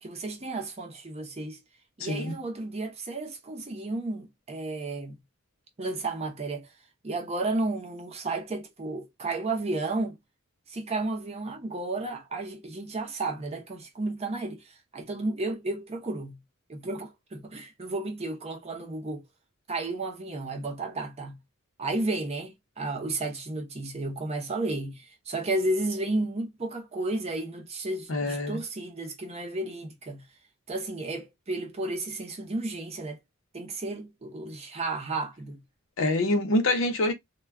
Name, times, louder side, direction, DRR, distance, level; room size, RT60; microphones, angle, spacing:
voice 1, 0.0-1.6 2.0-5.2 5.8-6.7 7.0-10.2 10.7-16.4 16.7-19.2 19.7-21.4 21.8-30.2 30.7-33.2 33.5-35.6, right 2 dB, 30° right, 0.6 m, -32 dB
voice 2, 2.0-2.3 28.1-28.6 36.0-37.1, left 2 dB, 65° left, 0.7 m, -25 dB
2.2 x 2.1 x 3.4 m
head